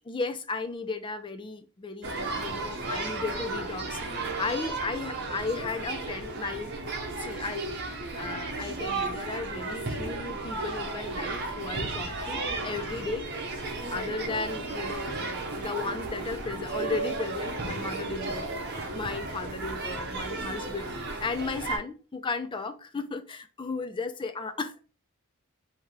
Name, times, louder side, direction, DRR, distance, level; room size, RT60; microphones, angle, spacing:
voice 1, 0.1-6.7 7.2-7.7 8.2-13.3 13.9-15.3 15.5-18.5 18.9-24.8, left 4 dB, 20° left, 0.4 m, -35 dB
sound 1, 2.0-21.8, right 3 dB, 50° right, 0.9 m, -34 dB
3.6 x 2.8 x 4.7 m
head